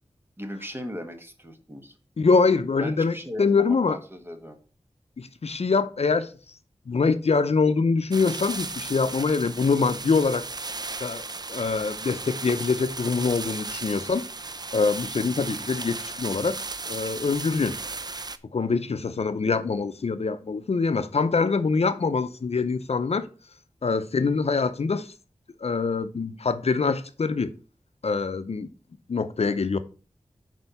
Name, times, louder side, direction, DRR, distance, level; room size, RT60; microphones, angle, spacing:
voice 1, 0.4-1.9 2.8-4.6 15.5-15.6, equal, 20° right, 1.3 m, -38 dB
voice 2, 2.2-4.0 5.2-6.3 6.9-10.4 11.0-11.2 11.5-14.2 14.7-16.6 16.9-17.8 18.5-23.3 23.8-25.1 25.6-27.5 28.0-28.7 29.1-29.8, left 4 dB, 65° left, 0.6 m, -24 dB
sound 1, 8.1-18.4, right 3 dB, 35° right, 0.5 m, -35 dB
6.3 x 4.4 x 5.5 m
wide cardioid pair, 50°, 12 cm